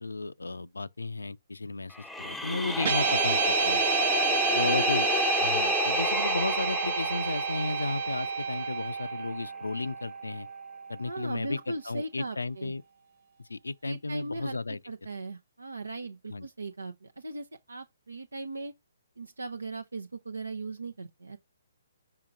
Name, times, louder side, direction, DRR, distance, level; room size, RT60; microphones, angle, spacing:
voice 1, 0.0-3.8 4.5-5.1 5.4-10.5 10.9-12.8 13.4-14.8 16.3-16.5, left 3 dB, 85° left, 0.4 m, -34 dB
sound 1, 1.9-9.0, left 3 dB, 5° left, 0.6 m, -31 dB
Guitar, 2.8-11.3, right 6 dB, 55° right, 0.4 m, -30 dB
voice 2, 4.2-4.8 11.0-12.7 13.8-14.6 14.9-18.7 19.2-21.4, right 2 dB, 90° right, 0.7 m, -38 dB
5.8 x 4.3 x 3.8 m
figure-of-eight pair, 135°, 0 cm